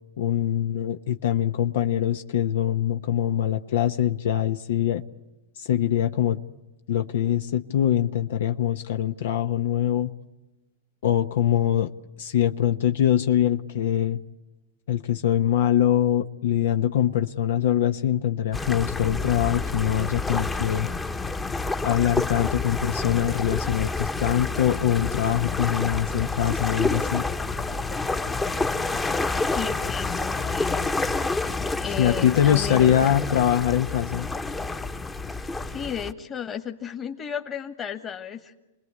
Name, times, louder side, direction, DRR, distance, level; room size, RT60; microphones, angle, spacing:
voice 1, 0.2-5.0 5.6-6.4 6.9-10.1 11.0-11.9 12.2-14.2 14.9-20.9 21.8-27.3 32.0-34.3, left 10 dB, 70° left, 8 dB, 1.0 m, -23 dB
sound 1, 18.5-36.1, left 3 dB, 10° left, 1.1 m, -28 dB
voice 2, 29.5-31.0 31.8-33.1 35.7-38.5, left 7 dB, 25° left, 4 dB, 1.8 m, -34 dB
29.0 x 20.5 x 9.7 m, 1.1 s
hypercardioid pair, 135°, 0 cm